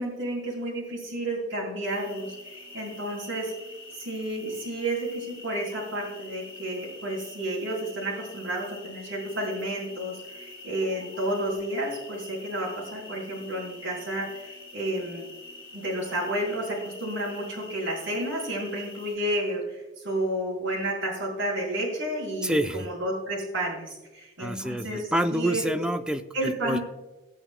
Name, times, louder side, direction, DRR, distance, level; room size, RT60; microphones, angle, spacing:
voice 1, 0.0-3.5 3.9-15.3 15.7-25.6 26.3-26.8, right 1 dB, 75° right, -8 dB, 4.1 m, -31 dB
sound 1, 1.9-19.2, left 2 dB, 85° left, 1.9 m, -46 dB
voice 2, 22.4-22.9 24.4-26.8, right 1 dB, 5° right, 7 dB, 0.5 m, -27 dB
18.0 x 8.9 x 2.2 m, 1.1 s
head